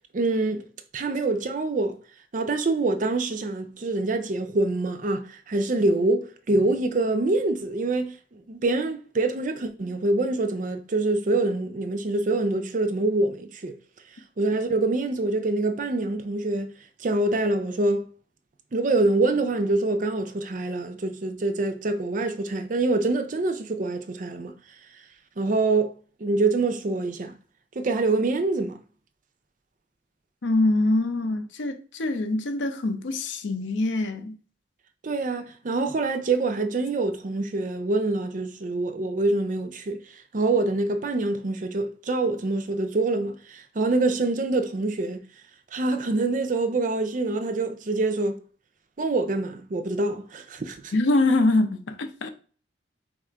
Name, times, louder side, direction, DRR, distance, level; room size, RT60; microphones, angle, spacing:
voice 1, 0.1-0.6 0.9-2.0 2.3-13.8 14.4-16.7 17.0-18.1 18.7-24.5 25.4-25.9 26.2-27.3 27.8-28.8 35.0-40.0 40.3-45.2 45.7-48.4 49.0-51.0, right 2 dB, 45° right, 0.5 m, -25 dB
voice 2, 30.4-34.4 50.9-52.3, left 2 dB, 75° left, 0.6 m, -24 dB
4.1 x 2.5 x 4.5 m
head